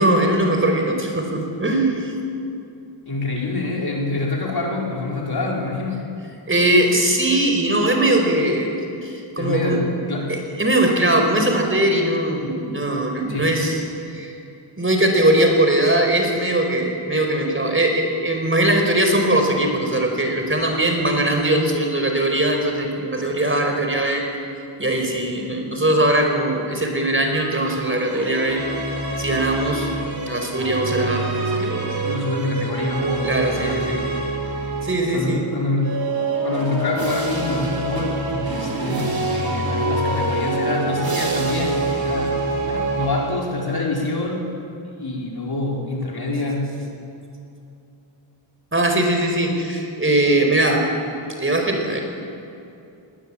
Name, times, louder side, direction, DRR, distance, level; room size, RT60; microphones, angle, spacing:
voice 1, 0.0-2.1 6.5-8.7 9.0-9.8 10.3-13.8 14.1-14.4 14.8-24.2 24.8-28.6 29.2-29.9 30.3-31.3 31.5-32.0 33.2-34.0 34.8-35.4 48.7-50.8 51.4-52.0, right 1 dB, 25° right, 2 dB, 4.5 m, -20 dB
voice 2, 3.1-6.1 9.4-10.4 13.3-13.6 32.0-33.9 35.1-36.1 36.4-44.5 45.0-46.8, left 2 dB, 50° left, -1 dB, 4.7 m, -26 dB
sound 1, 27.3-35.2 35.8-43.7, right 2 dB, 45° right, 4.2 m, -26 dB
20.0 x 19.0 x 8.6 m, 2.7 s
cardioid pair, 75°, 48 cm